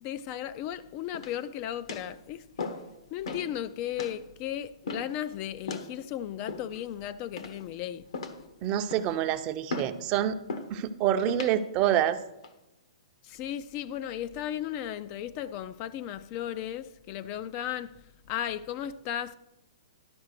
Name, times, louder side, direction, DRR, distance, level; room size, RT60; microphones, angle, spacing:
voice 1, 0.0-2.4 3.1-8.0 13.3-17.9 18.3-19.3, left 11 dB, 35° left, 0.4 m, -35 dB
sound 1, 1.1-1.5 1.9-2.1 2.6-2.9 3.2-3.5 4.0-4.2 4.9-5.2 5.7-5.9 6.5-6.9 7.4-7.7 8.1-8.5 8.9-9.2 9.7-10.0 10.5-10.7 11.3-11.6 12.2-12.5, left 3 dB, 70° left, 1.2 m, -37 dB
voice 2, 8.6-10.4 10.7-12.2, right 11 dB, 30° right, 0.6 m, -27 dB
11.5 x 4.9 x 6.5 m
hypercardioid pair, 140°, 3 cm